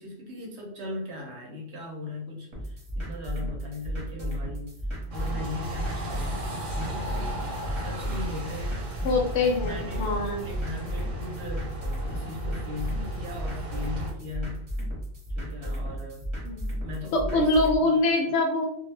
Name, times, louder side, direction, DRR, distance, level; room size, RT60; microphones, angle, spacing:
voice 1, 0.0-4.8 5.1-7.4 7.7-9.1 9.6-11.8 12.1-14.7 15.3-16.3 16.8-17.5 17.8-18.3, left 2 dB, 70° right, -1 dB, 1.0 m, -39 dB
sound 1, 2.5-17.8, equal, 25° right, 0.9 m, -34 dB
sound 2, 5.1-14.1, equal, 85° right, 1.2 m, -36 dB
voice 2, 9.0-10.5 16.4-16.7 17.1-18.6, left 2 dB, 75° left, 2 dB, 0.9 m, -24 dB
2.2 x 2.1 x 3.2 m, 0.69 s
omnidirectional pair, 1.2 m